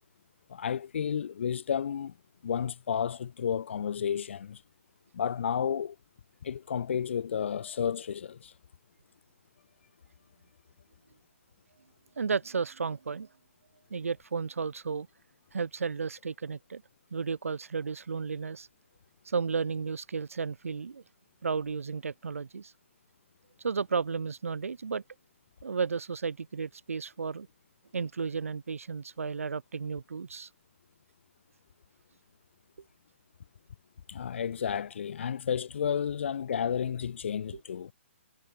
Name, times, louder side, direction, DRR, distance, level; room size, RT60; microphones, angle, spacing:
voice 1, 0.5-2.1 2.4-4.6 5.1-6.0 6.4-8.6 34.1-37.9, left 8 dB, 60° left, 2.8 m, -32 dB
voice 2, 12.2-13.3 13.9-15.1 15.5-16.8 17.1-18.7 19.3-21.0 21.4-22.7 23.6-25.0 25.6-27.5 27.9-30.5, right 5 dB, 85° right, 2.1 m, -33 dB
hypercardioid pair, 160°, 7 cm